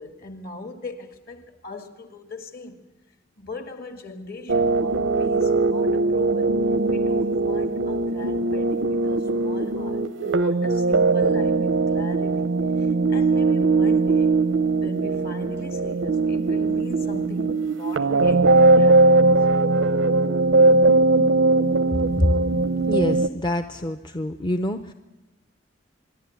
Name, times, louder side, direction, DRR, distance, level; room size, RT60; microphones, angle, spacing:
voice 1, 0.0-2.9 3.4-6.6 6.9-14.4 14.7-19.2, left 3 dB, 50° left, 1.8 m, -39 dB
sound 1, 4.5-23.3, right 3 dB, 85° right, 0.7 m, -20 dB
voice 2, 22.9-24.9, left 1 dB, 25° left, 0.6 m, -25 dB
25.0 x 11.0 x 9.4 m
head